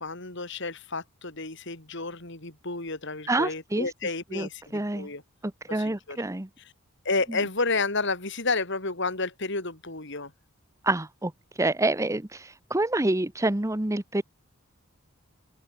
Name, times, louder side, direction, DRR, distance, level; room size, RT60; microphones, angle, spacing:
voice 1, 0.0-5.2 5.7-6.2 7.0-10.3, left 3 dB, 60° left, 4.1 m, -31 dB
voice 2, 3.3-3.9 4.3-5.1 5.4-6.5 7.3-7.4 10.8-11.3 11.6-14.2, right 2 dB, 15° right, 0.9 m, -27 dB
head